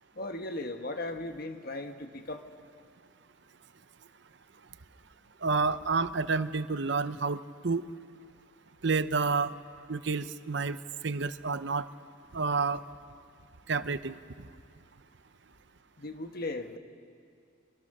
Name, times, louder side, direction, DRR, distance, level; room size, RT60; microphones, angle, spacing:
voice 1, 0.2-2.4 16.0-16.8, left 2 dB, 50° left, 6 dB, 1.4 m, -37 dB
voice 2, 5.4-7.4 7.6-7.8 8.8-9.5 9.9-10.8 11.0-11.9 12.3-12.8 13.7-14.2, right 4 dB, 60° right, 13 dB, 0.7 m, -29 dB
25.0 x 24.5 x 6.7 m, 2.2 s
head